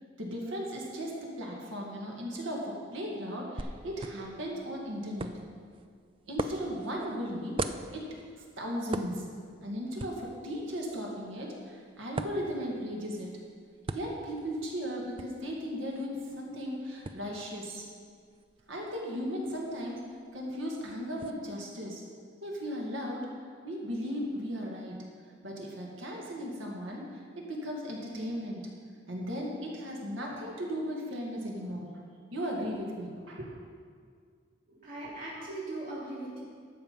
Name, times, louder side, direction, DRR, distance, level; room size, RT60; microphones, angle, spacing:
voice 1, 0.2-5.3 6.3-7.5 7.9-8.1 8.6-9.2 9.6-13.3 13.9-17.9 18.7-20.0 20.3-22.0 22.4-23.3 23.6-25.0 25.4-28.7 29.1-32.0 32.3-33.6, equal, 90° right, -2 dB, 2.1 m, -36 dB
sound 1, 3.6-21.3, right 2 dB, 25° right, 0.3 m, -43 dB
voice 2, 34.7-36.4, right 2 dB, 45° right, -7 dB, 3.2 m, -39 dB
12.0 x 7.4 x 5.3 m, 2.1 s
head